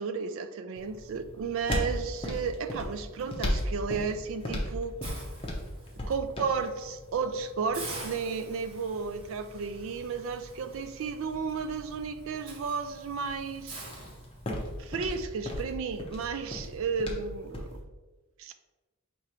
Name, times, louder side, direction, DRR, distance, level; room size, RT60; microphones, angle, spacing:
voice 1, 0.0-5.0 6.1-13.9 14.8-17.8 18.4-18.5, right 5 dB, 65° right, 10 dB, 0.3 m, -33 dB
sound 1, 0.8-17.8, left 1 dB, 25° left, 0.6 m, -38 dB
Hiss, 5.0-6.1 6.6-6.8 7.2-7.3 7.7-14.8, right 2 dB, 85° right, 1.3 m, -46 dB
4.8 x 3.0 x 2.9 m, 1.2 s
head